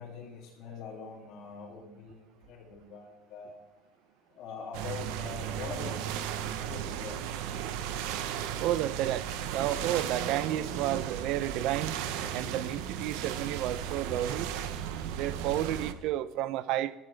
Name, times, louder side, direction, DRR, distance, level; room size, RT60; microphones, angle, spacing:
voice 1, 0.0-3.6 4.3-5.9 6.3-7.2, left 5 dB, 45° left, 2.9 m, -43 dB
sound 1, 4.7-15.9, right 9 dB, 75° right, 1.1 m, -35 dB
voice 2, 8.6-9.3 9.5-12.0 12.3-14.5 15.1-16.9, right 13 dB, 55° right, 0.6 m, -31 dB
18.0 x 12.0 x 3.5 m
cardioid pair, 170°, 0 cm